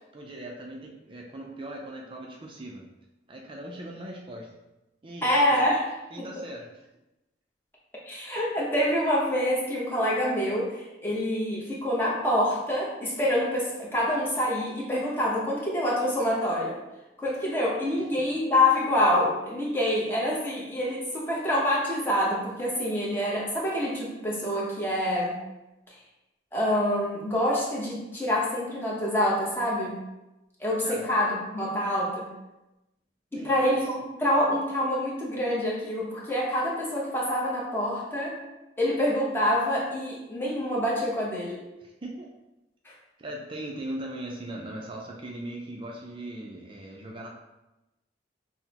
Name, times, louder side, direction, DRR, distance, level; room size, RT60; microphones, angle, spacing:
voice 1, 0.1-2.8 3.3-4.5 5.0-5.7 6.1-6.7 30.8-31.1 33.3-33.5 41.8-42.3 43.2-47.3, right 1 dB, 30° right, -1 dB, 0.4 m, -39 dB
voice 2, 5.2-5.9 6.2-6.3 8.1-16.8 17.2-25.4 25.9-26.0 26.5-30.0 30.6-32.3 33.3-38.4 38.8-41.6 42.8-42.9, left 1 dB, 10° left, -5 dB, 0.9 m, -26 dB
5.8 x 2.1 x 2.9 m, 0.99 s
head